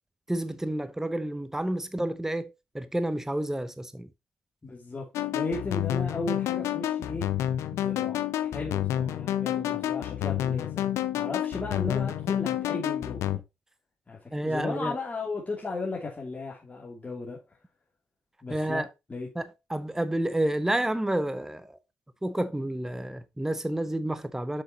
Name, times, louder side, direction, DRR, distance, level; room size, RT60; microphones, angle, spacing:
voice 1, 0.3-2.5 2.7-4.1 14.3-14.9 18.5-18.9 19.4-19.5 19.7-21.8 22.2-24.6, right 1 dB, 10° right, 0.7 m, -29 dB
voice 2, 4.6-5.1 5.3-7.3 7.8-10.9 11.1-13.2 14.1-17.6 18.4-19.3, left 3 dB, 30° left, 2.6 m, -35 dB
sound 1, 5.1-13.4, left 12 dB, 75° left, 0.6 m, -29 dB
7.4 x 6.5 x 2.8 m
hypercardioid pair, 45°, 5 cm